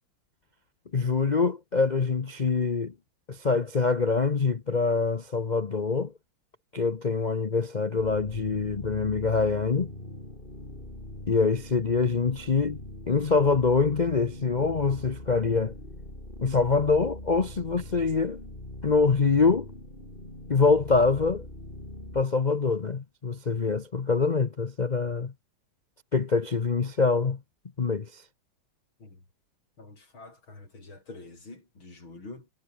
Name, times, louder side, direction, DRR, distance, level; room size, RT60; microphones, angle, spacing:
voice 1, 0.9-2.9 3.3-6.1 6.7-9.9 11.3-15.7 16.4-18.4 18.8-19.7 20.5-21.5 22.1-25.3 26.1-27.4 27.8-28.2, left 4 dB, 55° left, 0.4 m, -25 dB
sound 1, 8.0-22.2, left 1 dB, 25° left, 7.1 m, -42 dB
voice 2, 29.8-32.5, left 2 dB, 80° left, 7.5 m, -46 dB
omnidirectional pair, 2.2 m